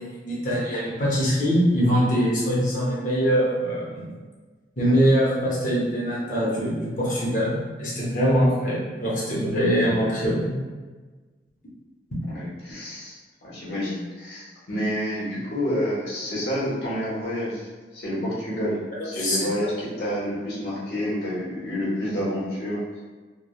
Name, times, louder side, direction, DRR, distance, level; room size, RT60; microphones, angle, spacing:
voice 1, 0.0-4.1 4.8-10.5 19.2-19.7, equal, 45° left, -5 dB, 0.7 m, -23 dB
voice 2, 12.2-18.8 19.0-23.0, equal, 70° left, -7 dB, 1.0 m, -29 dB
3.2 x 2.2 x 2.3 m, 1.3 s
head